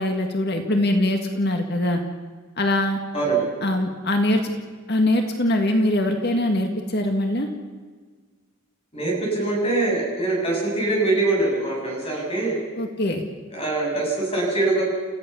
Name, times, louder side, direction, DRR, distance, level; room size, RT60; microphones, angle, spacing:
voice 1, 0.0-2.0 2.6-3.0 3.6-4.5 4.9-7.5 12.8-13.2, left 1 dB, 50° left, 4 dB, 1.9 m, -22 dB
voice 2, 3.1-3.4 8.9-12.6 13.5-14.8, right 2 dB, 25° left, -1 dB, 7.9 m, -23 dB
29.5 x 15.5 x 7.1 m, 1.5 s
head